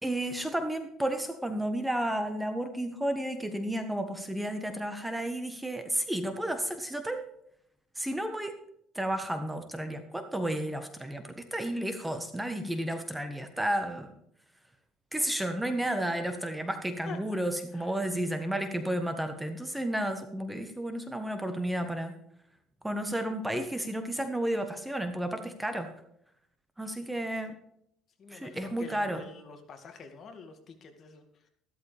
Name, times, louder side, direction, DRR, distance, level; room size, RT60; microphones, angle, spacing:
voice 1, 0.0-7.3 8.0-8.6 8.9-14.1 15.1-22.1 22.8-25.9 26.8-27.6 28.3-29.2, right 1 dB, 5° right, 7 dB, 1.3 m, -32 dB
voice 2, 17.0-17.4 17.7-18.0 26.8-27.3 28.2-31.5, left 4 dB, 45° left, 6 dB, 2.1 m, -47 dB
14.0 x 13.0 x 3.4 m, 0.71 s
cardioid pair, 130°, 0 cm